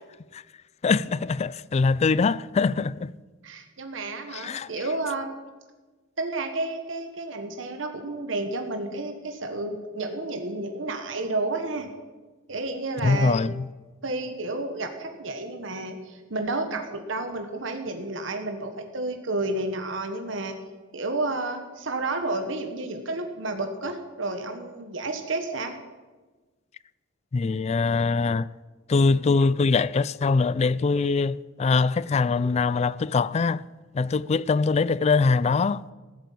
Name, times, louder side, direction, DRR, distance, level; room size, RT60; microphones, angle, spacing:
voice 1, 0.8-3.1 4.3-4.7 13.0-13.7 27.3-28.5 28.9-33.6 33.9-35.8, left 4 dB, 35° left, 0.3 m, -23 dB
voice 2, 3.4-5.3 6.2-11.9 12.5-13.4 14.0-20.5 20.9-25.7, right 2 dB, 70° right, 1.3 m, -31 dB
14.5 x 7.8 x 8.5 m
head